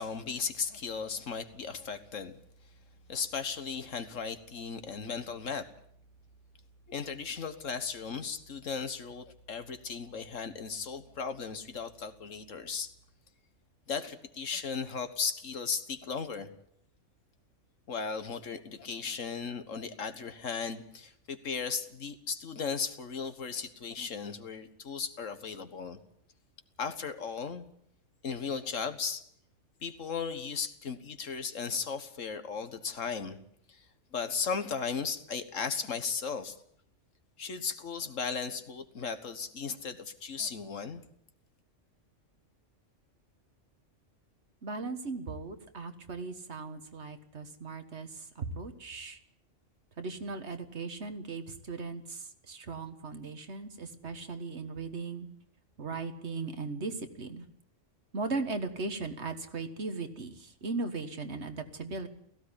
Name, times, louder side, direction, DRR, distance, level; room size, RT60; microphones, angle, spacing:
voice 1, 0.0-2.8 3.1-5.7 6.9-12.9 13.9-16.5 17.9-26.0 26.8-27.7 28.2-29.2 29.8-33.4 33.7-36.6 37.4-41.0, left 5 dB, 85° left, 10 dB, 1.8 m, -36 dB
voice 2, 44.6-49.2 50.0-55.3 55.8-57.5 58.1-62.1, right 3 dB, 60° right, 8 dB, 1.8 m, -38 dB
17.0 x 15.5 x 9.9 m, 0.69 s
omnidirectional pair, 1.3 m